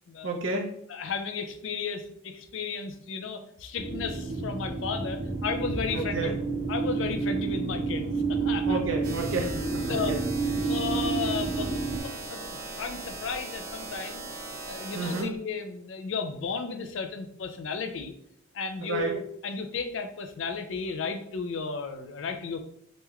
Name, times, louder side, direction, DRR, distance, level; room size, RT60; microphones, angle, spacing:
voice 1, 0.2-0.7 5.9-6.4 8.7-10.2 14.9-15.4 18.8-19.1, right 3 dB, 80° right, 1 dB, 0.7 m, -31 dB
voice 2, 0.9-6.4 6.7-8.8 9.5-9.6 9.9-10.2 10.6-11.7 12.0-14.2 14.7-18.1 18.5-22.6, left 5 dB, 75° left, 7 dB, 0.4 m, -34 dB
sound 1, 3.8-12.0, right 4 dB, 20° right, 0.5 m, -30 dB
sound 2, 9.0-15.2, right 2 dB, 50° right, 1.0 m, -39 dB
3.1 x 3.1 x 2.3 m, 0.68 s
head